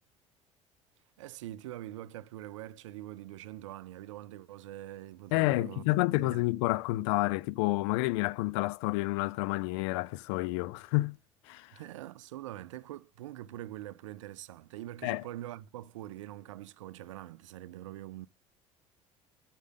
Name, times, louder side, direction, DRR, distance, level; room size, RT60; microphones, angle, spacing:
voice 1, 1.2-6.4 11.7-18.3, right 14 dB, 70° right, 0.4 m, -44 dB
voice 2, 5.3-11.2 11.5-11.7 15.0-15.2, left 20 dB, 60° left, 0.4 m, -29 dB
8.0 x 6.5 x 3.8 m
figure-of-eight pair, 60°, 17 cm